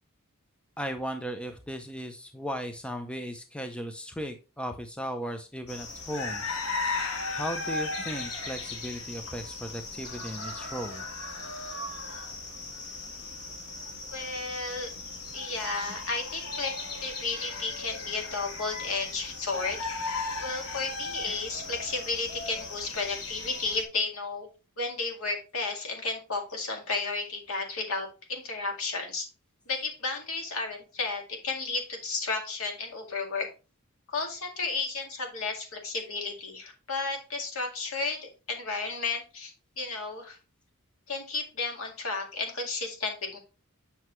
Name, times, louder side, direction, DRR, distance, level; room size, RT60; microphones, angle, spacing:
voice 1, 0.8-6.4 7.3-11.0, equal, 5° left, 6 dB, 0.6 m, -36 dB
sound 1, 5.7-23.8, left 3 dB, 85° left, 1.6 m, -36 dB
voice 2, 14.1-14.9 15.3-16.7 17.0-19.8 20.4-24.5 24.8-29.3 29.7-33.5 34.1-40.4 41.1-43.4, left 3 dB, 70° left, 2 dB, 2.1 m, -33 dB
7.7 x 5.8 x 3.1 m, 0.32 s
head